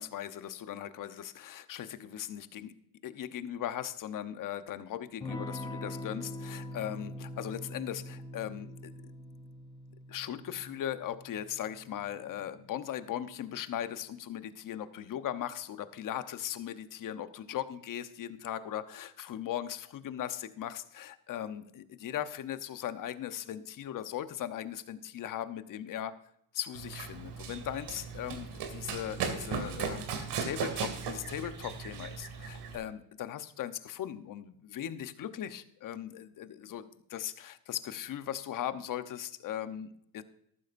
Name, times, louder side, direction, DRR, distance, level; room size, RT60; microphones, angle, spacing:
voice 1, 0.0-2.7 3.0-9.1 10.1-26.2 26.5-40.2, left 10 dB, 45° left, 11 dB, 1.0 m, -39 dB
Electric guitar / Strum, 5.2-13.5, left 1 dB, 10° left, 0.8 m, -44 dB
Run, 26.7-32.8, right 6 dB, 55° right, 2.5 m, -37 dB
13.5 x 12.0 x 2.6 m, 0.72 s
supercardioid pair, 100°, 47 cm